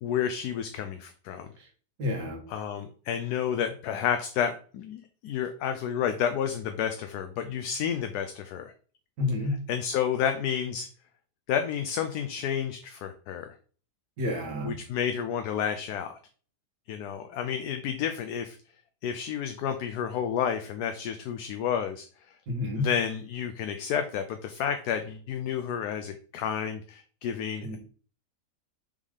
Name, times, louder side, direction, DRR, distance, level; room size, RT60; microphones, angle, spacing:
voice 1, 0.0-1.5 2.5-8.7 9.7-10.9 11.5-13.5 14.6-16.2 16.9-18.6 19.0-22.0 22.7-27.8, left 8 dB, 75° left, 7 dB, 1.1 m, -30 dB
voice 2, 2.0-2.4 9.2-9.6 14.2-14.7 22.5-22.9 27.6-27.8, left 2 dB, 85° right, 2 dB, 2.2 m, -29 dB
5.4 x 3.6 x 4.8 m, 0.42 s
omnidirectional pair, 1.8 m